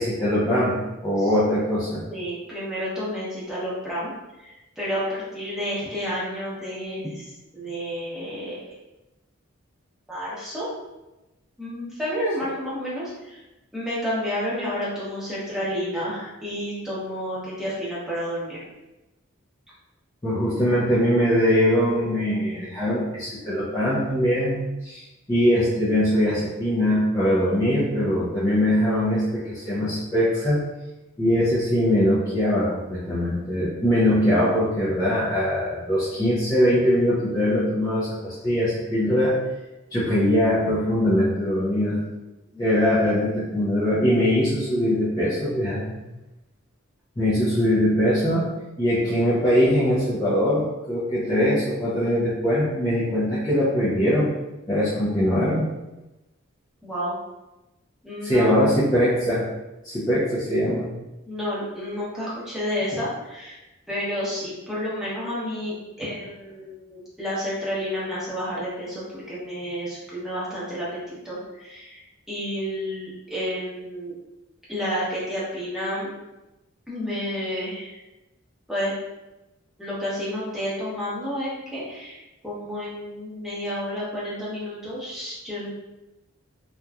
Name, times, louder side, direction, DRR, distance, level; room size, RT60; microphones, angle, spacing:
voice 1, 0.0-2.0 20.2-25.0 25.3-30.6 31.2-39.4 39.9-42.0 42.6-46.0 47.2-48.5 48.8-54.3 54.7-55.6 58.2-59.4 59.8-60.9, equal, 20° left, -10 dB, 0.5 m, -22 dB
voice 2, 2.1-4.1 4.4-8.8 10.1-10.7 11.6-13.4 13.7-18.6 42.5-42.7 55.3-55.4 56.8-57.1 58.0-58.6 61.3-63.6 63.9-65.7 66.0-72.0 72.3-74.1 74.7-76.1 76.9-78.0 78.7-78.9 79.8-85.8, equal, ahead, -9 dB, 0.9 m, -30 dB
2.9 x 2.4 x 2.2 m, 1.0 s
head